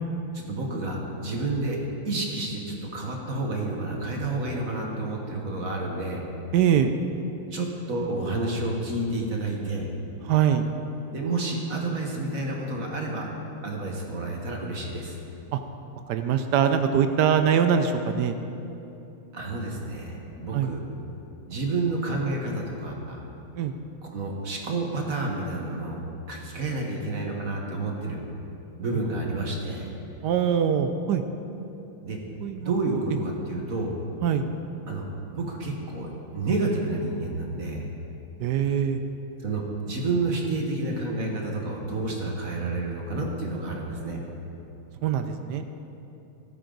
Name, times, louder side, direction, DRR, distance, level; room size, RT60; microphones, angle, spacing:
voice 1, 0.5-1.8 2.0-6.2 7.5-9.9 11.1-13.3 13.6-15.2 19.3-20.8 21.4-23.2 24.1-26.0 26.3-28.2 28.8-29.9 32.0-32.2 32.6-33.9 34.9-35.1 35.3-37.9 39.4-44.2, right 2 dB, 45° right, 0 dB, 1.6 m, -30 dB
voice 2, 6.5-6.9 10.2-10.7 15.5-15.6 16.1-18.4 20.5-20.7 23.5-23.7 30.2-31.2 32.4-33.0 34.2-34.5 38.4-39.0 45.0-45.6, right 8 dB, 80° right, 7 dB, 0.9 m, -23 dB
15.0 x 14.0 x 4.0 m, 2.9 s
omnidirectional pair, 2.4 m